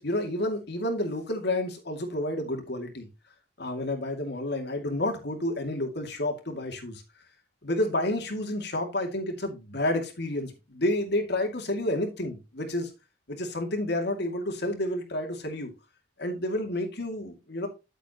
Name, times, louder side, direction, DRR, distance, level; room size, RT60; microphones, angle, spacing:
voice 1, 0.0-3.1 3.6-7.0 7.6-12.9 13.3-15.7 16.2-17.7, left 1 dB, 60° left, 2.5 m, -30 dB
9.6 x 8.2 x 3.0 m
head